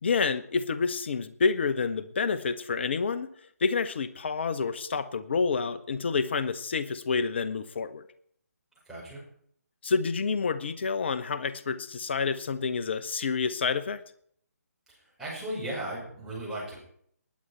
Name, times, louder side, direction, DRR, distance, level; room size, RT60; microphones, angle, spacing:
voice 1, 0.0-3.3 3.6-8.0 9.8-14.0, left 5 dB, 40° left, 14 dB, 0.9 m, -28 dB
voice 2, 8.9-9.2 15.2-16.8, right 1 dB, 5° right, -8 dB, 6.0 m, -36 dB
19.5 x 9.5 x 4.5 m, 0.66 s
figure-of-eight pair, 145°, 9 cm